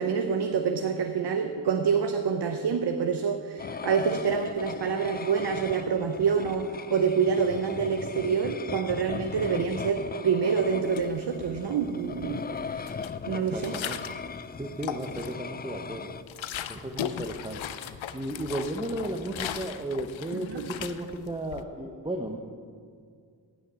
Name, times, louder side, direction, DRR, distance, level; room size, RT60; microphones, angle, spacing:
voice 1, 0.0-12.9 13.3-13.8 20.3-20.6, right 6 dB, 60° right, 6 dB, 0.8 m, -27 dB
sound 1, 3.6-16.2, left 6 dB, 25° left, 0.3 m, -38 dB
sound 2, 10.9-11.7 12.1-14.3 14.7-15.5 15.9-21.6, left 10 dB, 80° left, 0.6 m, -38 dB
voice 2, 13.2-14.0 14.6-16.1 16.7-17.6 18.1-22.4, right 1 dB, 10° right, 3 dB, 0.9 m, -34 dB
9.6 x 6.5 x 8.2 m, 2.1 s
cardioid pair, 40°, 46 cm